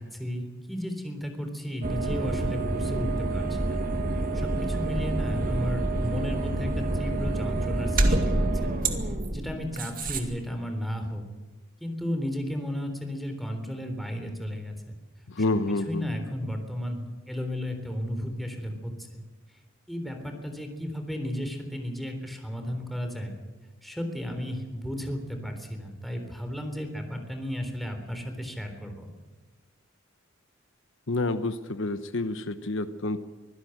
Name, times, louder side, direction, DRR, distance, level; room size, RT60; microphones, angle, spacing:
voice 1, 0.0-3.8 4.3-8.7 9.0-11.2 11.8-14.7 15.9-19.2 19.9-23.4 23.8-29.1, equal, ahead, 5 dB, 3.6 m, -34 dB
sound 1, 1.8-10.2, right 2 dB, 45° right, 2.1 m, -27 dB
voice 2, 15.3-16.1 31.1-33.2, left 2 dB, 65° left, 11 dB, 1.0 m, -28 dB
24.5 x 16.0 x 8.0 m, 1.2 s
head